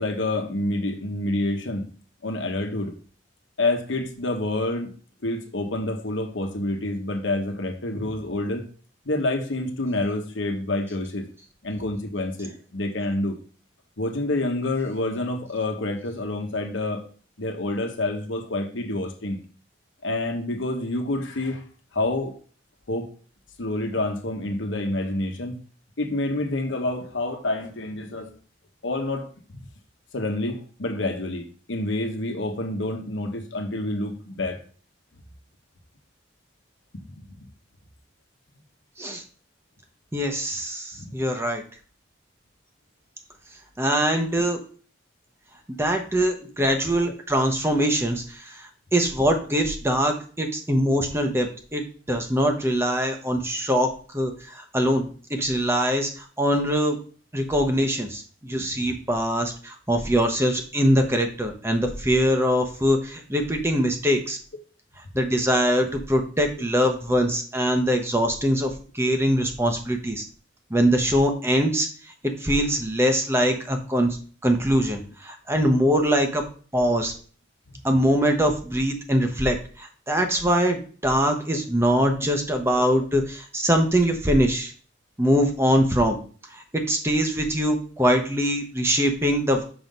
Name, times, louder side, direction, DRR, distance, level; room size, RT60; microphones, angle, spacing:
voice 1, 0.0-1.8 2.2-2.9 3.6-4.9 5.2-8.7 9.0-11.2 11.6-13.4 14.0-17.0 17.4-19.4 20.0-21.6 21.9-22.3 22.9-23.1 23.6-25.6 26.0-28.3 28.8-29.6 30.1-34.6 36.9-37.4 40.9-41.1 47.0-47.1 58.7-58.8 66.6-66.7, left 2 dB, 80° left, 1.1 m, -28 dB
voice 2, 40.1-41.6 43.8-44.6 45.7-51.8 52.1-57.0 57.3-64.4 65.1-70.2 70.7-71.9 72.4-74.2 74.4-76.4 76.7-77.1 77.8-84.7 85.2-86.2 86.5-89.6, equal, 15° right, 0.9 m, -23 dB
6.1 x 3.8 x 5.3 m
head